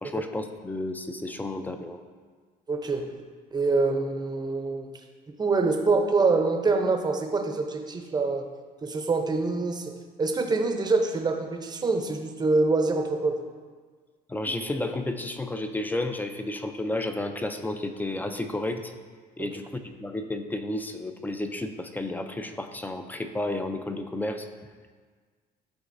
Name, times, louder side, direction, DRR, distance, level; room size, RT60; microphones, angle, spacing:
voice 1, 0.0-2.0 14.3-18.9 19.4-24.5, left 2 dB, 10° left, 7 dB, 0.4 m, -32 dB
voice 2, 2.7-3.1 3.5-4.9 5.4-8.5 8.8-9.9 10.2-13.4 19.4-19.5, right 3 dB, 25° right, 4 dB, 0.7 m, -25 dB
11.5 x 3.8 x 2.6 m, 1.5 s
cardioid pair, 110°, 17 cm